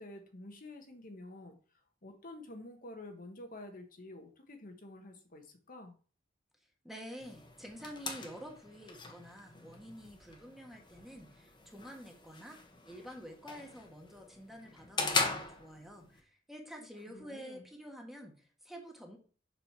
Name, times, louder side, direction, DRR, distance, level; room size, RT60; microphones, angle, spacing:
voice 1, 0.0-1.6 2.0-6.0 17.1-17.7, left 1 dB, 45° left, 5 dB, 1.3 m, -49 dB
voice 2, 6.8-12.6 12.8-19.2, equal, ahead, 2 dB, 1.5 m, -49 dB
sound 1, 7.2-16.2, left 3 dB, 25° left, 1.3 m, -40 dB
7.2 x 4.9 x 6.0 m, 0.40 s
head